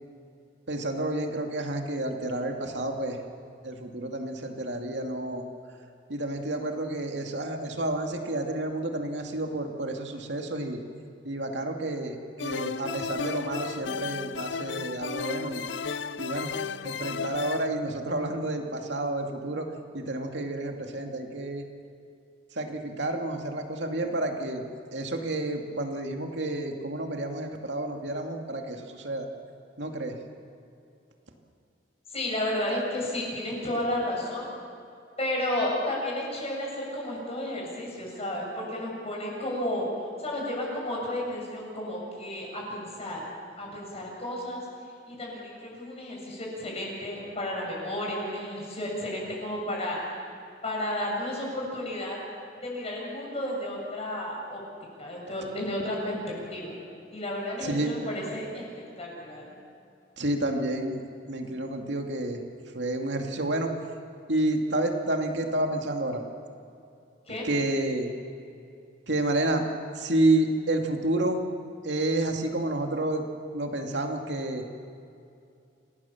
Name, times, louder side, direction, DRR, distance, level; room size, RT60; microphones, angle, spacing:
voice 1, 0.7-3.2 3.6-5.4 6.1-10.8 11.2-15.6 16.2-16.5 16.8-19.7 19.9-21.7 22.5-24.6 24.9-29.3 29.8-30.1 57.6-57.9 60.2-61.0 61.3-62.4 62.7-63.7 64.3-66.2 67.4-68.1 69.1-69.6 69.9-71.4 71.8-73.2 73.5-74.6, right 1 dB, 70° right, 3 dB, 2.6 m, -30 dB
sound 1, 12.4-17.7, left 5 dB, 75° left, 0.6 m, -34 dB
voice 2, 32.1-34.5 35.2-39.9 40.2-43.2 43.6-44.7 45.1-50.0 50.6-52.2 52.6-54.6 55.0-56.2 56.5-56.8 57.1-58.6 59.0-59.6 67.3-67.5, left 1 dB, 35° left, -2 dB, 7.5 m, -32 dB
27.5 x 18.5 x 7.3 m, 2.5 s
head